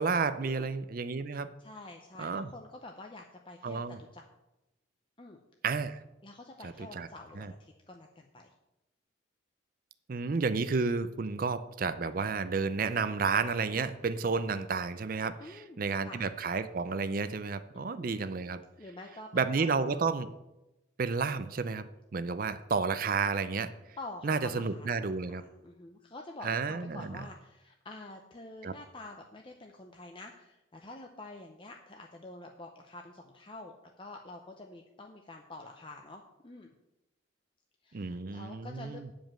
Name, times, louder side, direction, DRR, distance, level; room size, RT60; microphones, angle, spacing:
voice 1, 0.0-1.5 2.2-2.5 3.6-4.0 5.6-6.0 6.6-7.1 7.4-7.5 10.1-18.6 19.3-20.3 21.0-23.7 24.2-25.4 26.4-27.2 28.6-28.7 37.9-39.1, right 4 dB, 45° right, 12 dB, 0.5 m, -31 dB
voice 2, 1.6-4.2 5.2-5.4 6.2-8.5 15.4-16.2 17.7-18.2 18.8-19.9 24.0-36.7 37.8-39.0, left 2 dB, 25° left, 2 dB, 0.6 m, -48 dB
9.3 x 5.2 x 7.5 m, 0.95 s
head